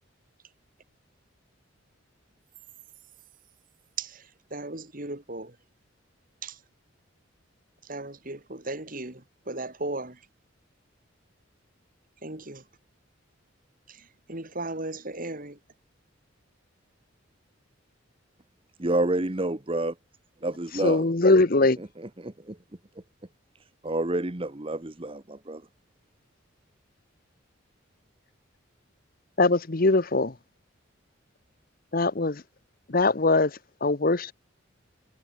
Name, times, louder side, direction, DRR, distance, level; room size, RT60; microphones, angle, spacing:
voice 1, 4.0-5.6 6.4-6.6 7.8-10.3 12.2-12.6 13.9-15.6, right 2 dB, 40° right, 2.7 m, -36 dB
voice 2, 18.8-19.9 20.4-21.1 21.8-22.6 23.8-25.6, right 2 dB, 25° right, 1.1 m, -29 dB
voice 3, 20.8-21.8 29.4-30.3 31.9-32.4 32.9-33.5 33.8-34.3, left 2 dB, 45° left, 1.0 m, -21 dB
head